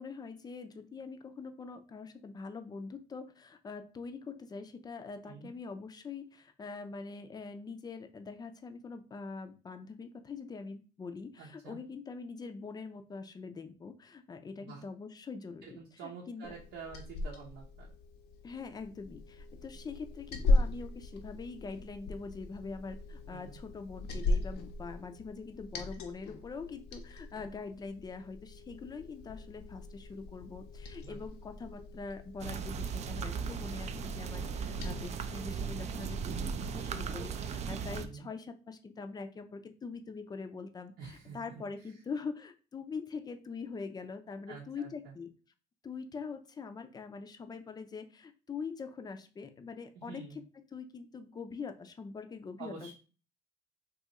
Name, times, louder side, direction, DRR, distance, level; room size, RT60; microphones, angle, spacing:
voice 1, 0.0-16.5 18.4-45.3 45.8-50.4 50.7-52.9, left 4 dB, 25° left, 8 dB, 0.4 m, -43 dB
voice 2, 11.4-11.8 14.6-14.8 15.6-17.9 23.2-23.6 31.0-31.2 38.0-38.3 41.0-41.4 41.8-42.0 44.5-45.1 49.9-50.4 52.6-52.9, right 5 dB, 80° right, -2 dB, 0.7 m, -48 dB
Liquid, 16.4-35.1, left 2 dB, 75° left, 0.7 m, -37 dB
sound 1, 32.4-38.1, right 6 dB, 40° right, 0.4 m, -37 dB
2.7 x 2.4 x 3.9 m, 0.37 s
cardioid pair, 110°, 17 cm